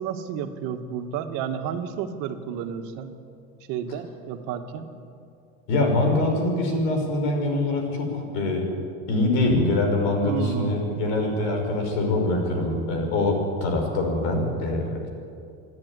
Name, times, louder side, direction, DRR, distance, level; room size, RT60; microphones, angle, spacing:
voice 1, 0.0-3.1 3.7-4.9 10.2-10.8, right 8 dB, 75° right, 6 dB, 1.9 m, -31 dB
voice 2, 5.7-8.7 9.1-15.1, left 2 dB, 85° left, 3 dB, 5.6 m, -24 dB
27.5 x 10.5 x 9.7 m, 2.5 s
cardioid pair, 130°, 32 cm